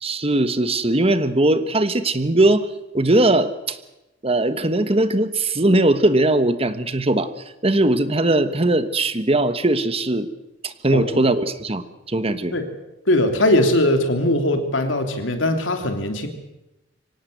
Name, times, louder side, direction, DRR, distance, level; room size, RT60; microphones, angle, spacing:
voice 1, 0.0-2.7 2.9-3.8 4.2-7.3 7.6-10.3 10.6-12.6, right 2 dB, 30° right, 11 dB, 1.3 m, -19 dB
voice 2, 10.9-11.3 12.5-12.7 13.1-16.3, left 1 dB, 80° left, 5 dB, 3.2 m, -20 dB
25.0 x 17.5 x 8.0 m, 0.93 s
head